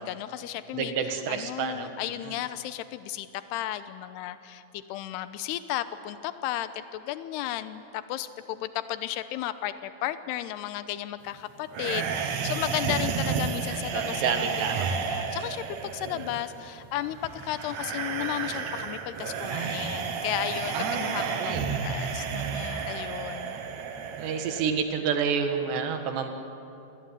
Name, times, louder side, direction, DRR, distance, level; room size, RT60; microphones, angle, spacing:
voice 1, 0.0-0.9 1.3-23.6, left 13 dB, 80° left, 12 dB, 2.9 m, -34 dB
voice 2, 0.7-2.3 13.7-14.9 16.1-16.3 20.7-21.7 24.2-26.3, right 6 dB, 90° right, 6 dB, 4.0 m, -30 dB
sound 1, 11.7-24.7, right 6 dB, 55° right, 2.3 m, -32 dB
28.0 x 21.0 x 9.7 m, 2.8 s
omnidirectional pair, 4.8 m